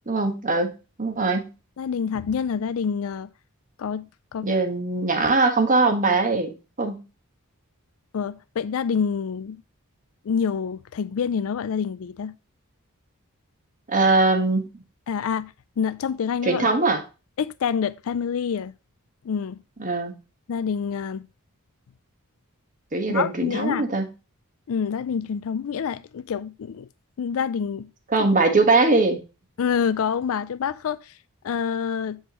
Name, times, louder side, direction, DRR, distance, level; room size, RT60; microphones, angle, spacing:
voice 1, 0.1-1.5 4.4-7.0 13.9-14.7 16.4-17.0 19.8-20.1 22.9-24.1 28.1-29.2, right 3 dB, 35° right, 1.4 m, -21 dB
voice 2, 1.8-3.3 3.8-4.5 8.1-9.6 10.2-12.3 15.1-16.7 17.4-18.7 19.2-19.6 20.5-21.3 23.1-23.9 24.7-26.9 27.2-27.9 29.6-31.1 31.4-32.2, left 6 dB, 65° left, 0.4 m, -27 dB
8.7 x 5.4 x 3.0 m
head